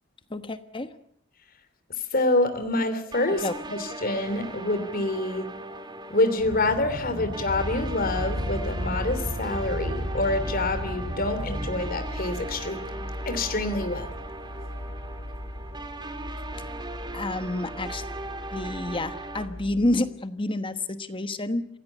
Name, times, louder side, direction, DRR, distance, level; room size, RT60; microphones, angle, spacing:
voice 1, 0.3-0.9 3.4-3.5 7.1-7.3 17.1-18.1 18.5-21.7, left 2 dB, 25° left, 10 dB, 1.2 m, -29 dB
voice 2, 2.1-5.5 6.1-12.8 13.2-14.1, left 2 dB, 50° left, 8 dB, 3.0 m, -26 dB
sound 1, 3.1-19.5, right 2 dB, 20° right, 2.4 m, -39 dB
sound 2, 6.4-11.9, equal, 70° right, 5.3 m, -36 dB
sound 3, 7.5-20.0, equal, 85° left, 4.2 m, -37 dB
27.0 x 16.5 x 8.2 m, 0.69 s
head